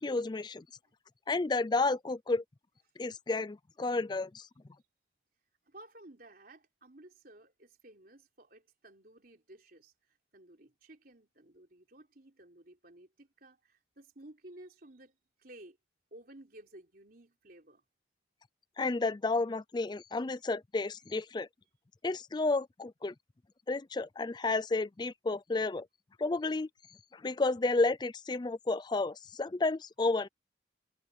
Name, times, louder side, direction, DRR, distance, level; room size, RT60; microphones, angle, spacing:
voice 1, 0.0-0.6 1.3-2.4 3.0-4.5 18.8-21.5 22.0-23.1 23.7-25.9 26.2-26.7 27.1-30.3, left 3 dB, 25° left, 0.4 m, -31 dB
voice 2, 5.6-15.8 16.1-17.8, right 1 dB, 50° right, 3.7 m, -55 dB
head